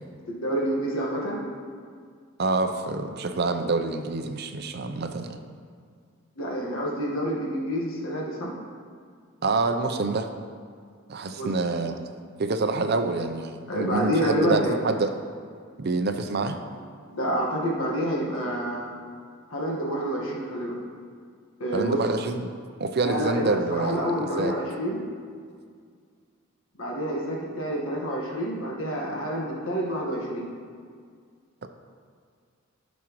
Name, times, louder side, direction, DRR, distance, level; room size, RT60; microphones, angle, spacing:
voice 1, 0.3-1.4 6.4-8.5 11.4-11.5 13.7-14.7 17.1-18.9 19.5-20.8 21.6-22.0 23.0-25.0 26.7-30.5, equal, 75° left, -3 dB, 1.5 m, -28 dB
voice 2, 2.4-5.4 9.4-10.3 11.1-12.0 12.4-15.1 15.8-16.6 21.7-22.5 22.8-24.5 31.6-31.7, right 3 dB, 50° right, 7 dB, 0.6 m, -27 dB
14.0 x 6.2 x 3.1 m, 2.1 s
head